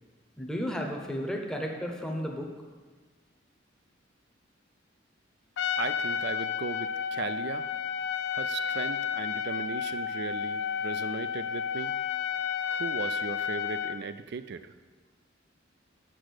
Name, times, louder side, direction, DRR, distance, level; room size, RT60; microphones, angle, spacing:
voice 1, 0.4-2.5, equal, 5° left, 1 dB, 0.8 m, -33 dB
Trumpet, 5.6-14.0, left 7 dB, 65° left, 0.4 m, -32 dB
voice 2, 5.8-7.7 8.3-12.0 12.7-14.7, right 5 dB, 55° right, 12 dB, 0.4 m, -37 dB
6.1 x 6.1 x 6.5 m, 1.4 s
head